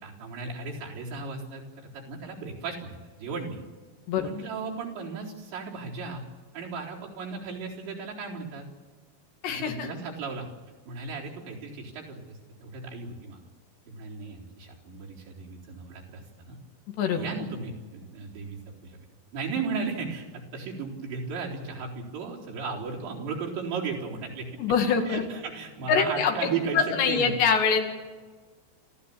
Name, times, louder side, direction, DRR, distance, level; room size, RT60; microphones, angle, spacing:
voice 1, 0.0-3.6 4.2-6.2 6.5-8.6 9.5-10.5 10.9-13.4 13.9-16.6 17.1-19.0 19.3-24.5 25.1-27.4, right 4 dB, 85° right, -3 dB, 6.3 m, -35 dB
voice 2, 9.4-9.9 17.0-17.2 24.6-25.3 25.9-27.8, left 6 dB, 75° left, 4 dB, 4.5 m, -24 dB
28.5 x 14.0 x 8.7 m, 1.4 s
omnidirectional pair, 5.0 m